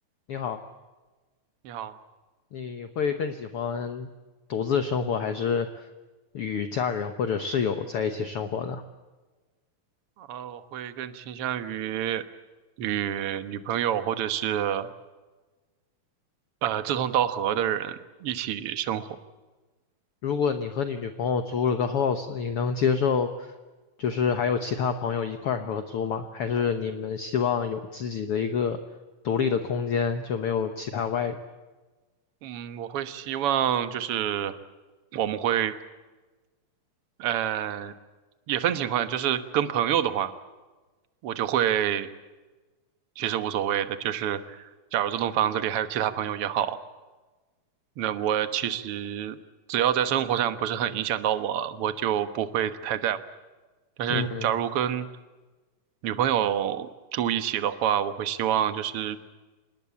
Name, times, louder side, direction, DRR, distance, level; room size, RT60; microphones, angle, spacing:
voice 1, 0.3-0.6 2.5-4.1 4.5-5.7 6.3-8.8 20.2-23.5 24.0-28.8 29.2-31.4 54.1-54.5, left 6 dB, 60° left, 8 dB, 1.7 m, -27 dB
voice 2, 10.2-12.2 12.8-14.9 16.6-19.1 32.4-34.6 35.1-35.8 37.2-37.9 38.5-40.3 41.2-42.1 43.2-46.8 48.0-49.4 49.7-53.2 54.0-55.1 56.0-59.2, right 10 dB, 55° right, 11 dB, 1.8 m, -27 dB
26.5 x 20.0 x 8.4 m, 1.2 s
omnidirectional pair, 3.6 m